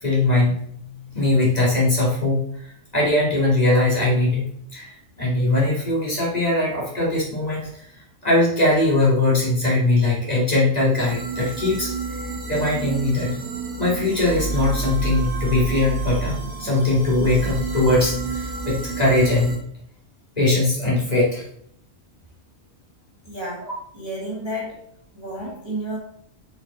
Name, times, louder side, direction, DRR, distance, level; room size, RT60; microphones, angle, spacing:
voice 1, 0.0-4.5 4.7-7.9 8.2-13.3 13.8-19.5 20.4-21.4, left 2 dB, 30° left, -5 dB, 3.0 m, -21 dB
sound 1, 10.9-19.6, right 4 dB, 45° right, 2.1 m, -29 dB
voice 2, 23.2-24.8 25.1-26.0, right 1 dB, 20° right, -5 dB, 1.9 m, -31 dB
6.9 x 5.2 x 4.3 m, 0.68 s
omnidirectional pair, 1.3 m